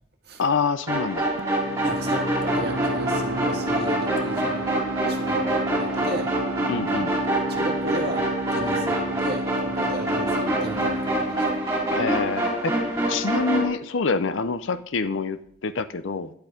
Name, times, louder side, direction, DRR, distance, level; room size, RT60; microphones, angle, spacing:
voice 1, 0.4-1.3 6.7-7.1 11.9-16.3, left 4 dB, 80° left, 14 dB, 0.6 m, -26 dB
sound 1, 0.9-13.7, right 1 dB, 15° right, 5.6 m, -26 dB
sound 2, 1.4-12.8, right 2 dB, 75° right, 0.7 m, -32 dB
voice 2, 1.8-4.8 5.1-6.3 7.5-11.4, right 1 dB, 55° right, 2 dB, 1.9 m, -35 dB
11.5 x 8.3 x 5.1 m, 0.67 s
head